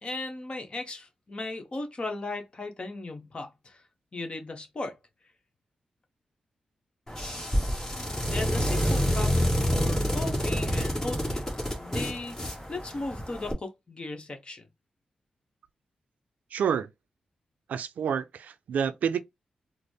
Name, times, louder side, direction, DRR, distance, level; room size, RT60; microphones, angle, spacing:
voice 1, 0.0-3.8 4.1-5.0 7.1-7.3 8.3-14.7, left 2 dB, 40° left, 1.0 m, -37 dB
sound 1, 7.1-13.5, equal, 20° left, 1.4 m, -28 dB
voice 2, 16.5-16.9 17.7-19.2, right 7 dB, 85° right, 0.4 m, -28 dB
4.0 x 2.0 x 3.3 m
cardioid pair, 70°, 3 cm